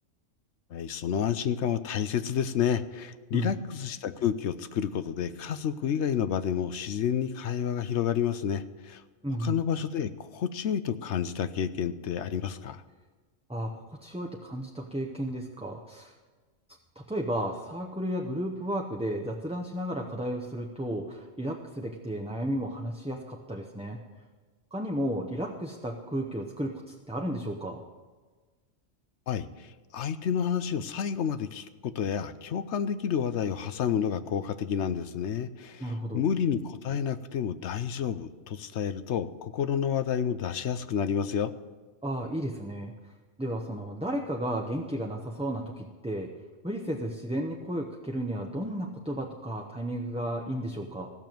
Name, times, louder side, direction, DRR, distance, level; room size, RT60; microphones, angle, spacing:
voice 1, 0.7-9.0 9.4-12.8 29.3-29.5 29.9-41.5, left 8 dB, 70° left, 13 dB, 1.0 m, -30 dB
voice 2, 9.2-9.6 13.5-16.1 17.0-24.0 24.7-27.8 35.8-36.2 42.0-43.1 43.4-46.3 46.6-51.1, right 1 dB, 5° right, 0 dB, 0.8 m, -33 dB
15.5 x 6.9 x 9.1 m, 1.4 s
omnidirectional pair, 1.3 m